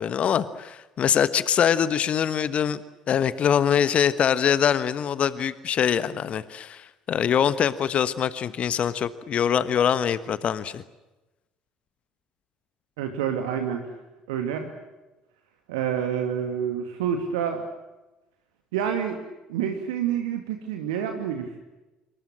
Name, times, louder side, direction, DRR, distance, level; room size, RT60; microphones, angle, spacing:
voice 1, 0.0-2.8 3.1-10.8, left 8 dB, 40° left, 15 dB, 1.3 m, -23 dB
voice 2, 13.0-13.8 14.3-14.7 15.7-17.7 18.7-19.2 19.5-21.6, right 8 dB, 65° right, 5 dB, 2.4 m, -28 dB
27.5 x 25.0 x 7.6 m, 1.1 s
figure-of-eight pair, 55°, 3 cm